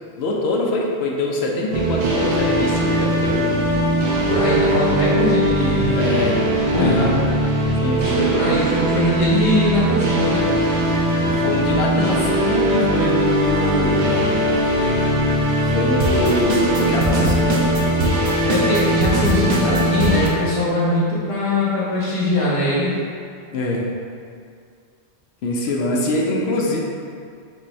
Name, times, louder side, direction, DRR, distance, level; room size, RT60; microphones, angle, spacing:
voice 1, 0.2-3.5 5.9-6.5 6.8-7.1 7.8-8.2 11.2-14.2 15.6-17.8 23.5-23.9 25.4-26.8, left 2 dB, 70° left, -1 dB, 0.9 m, -23 dB
sound 1, 1.7-20.3, right 1 dB, 90° right, 1.0 m, -20 dB
voice 2, 4.3-6.0 6.6-7.1 8.0-10.5 18.5-22.9, left 1 dB, 30° left, -9 dB, 1.1 m, -21 dB
6.1 x 2.6 x 3.2 m, 2.3 s
omnidirectional pair, 1.1 m